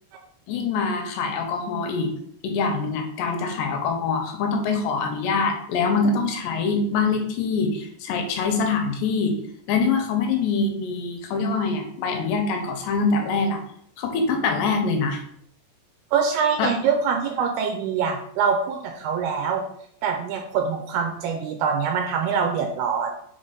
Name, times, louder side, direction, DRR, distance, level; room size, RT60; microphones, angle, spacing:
voice 1, 0.5-2.1 2.4-9.3 9.7-13.6 14.0-15.2 16.6-16.7, left 4 dB, 85° left, 4 dB, 2.9 m, -24 dB
voice 2, 16.1-19.6 20.0-23.1, right 6 dB, 80° right, 3 dB, 2.4 m, -24 dB
6.5 x 4.1 x 3.8 m, 0.67 s
omnidirectional pair, 5.0 m